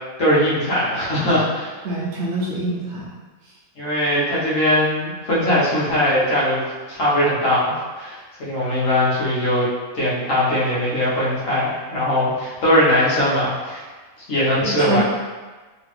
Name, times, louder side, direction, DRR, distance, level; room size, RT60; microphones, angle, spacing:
voice 1, 0.2-1.7 3.8-9.7 9.9-13.8 14.3-15.0, left 1 dB, 70° left, -7 dB, 1.4 m, -20 dB
voice 2, 1.8-3.1 3.4-3.5 14.6-15.0, right 2 dB, 65° right, -3 dB, 0.9 m, -25 dB
3.0 x 3.0 x 3.1 m, 1.3 s
omnidirectional pair, 1.4 m